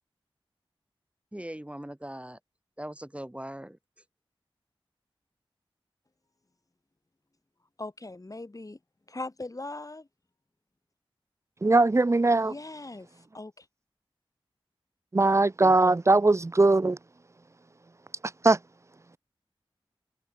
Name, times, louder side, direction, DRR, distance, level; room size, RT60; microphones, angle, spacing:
voice 1, 1.3-2.4 2.8-3.8 15.6-15.8, right 1 dB, 10° right, 2.0 m, -40 dB
voice 2, 7.8-8.8 9.1-10.1 12.3-13.1 13.3-13.7, left 2 dB, 35° left, 1.9 m, -39 dB
voice 3, 11.6-12.5 15.1-17.0 18.4-18.6, right 2 dB, 30° right, 0.5 m, -20 dB
open air
cardioid pair, 45°, 10 cm